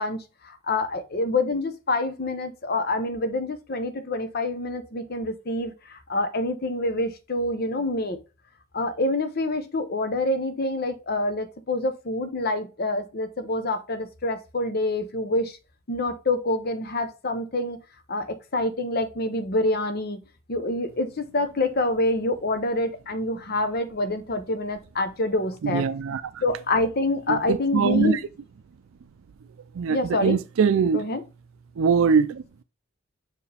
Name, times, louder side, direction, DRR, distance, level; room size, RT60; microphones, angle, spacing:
voice 1, 0.0-8.2 8.7-15.6 15.9-17.8 18.1-20.2 20.5-25.9 26.4-28.2 29.9-30.4 30.9-31.2, left 2 dB, 50° left, 0.8 m, -26 dB
voice 2, 25.6-26.4 27.3-28.2 29.7-31.0 31.8-32.6, right 6 dB, 80° right, 0.4 m, -23 dB
6.1 x 4.8 x 3.4 m
head